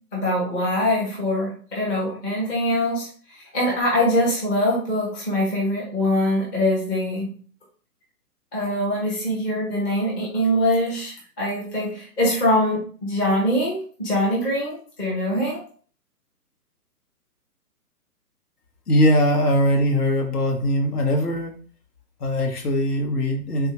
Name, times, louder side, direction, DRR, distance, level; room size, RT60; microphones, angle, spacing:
voice 1, 0.1-7.3 8.5-15.6, left 1 dB, 15° left, -4 dB, 0.5 m, -23 dB
voice 2, 18.9-21.6 22.2-23.7, equal, 75° left, 2 dB, 1.1 m, -21 dB
3.5 x 2.5 x 2.9 m, 0.42 s
hypercardioid pair, 140°, 46 cm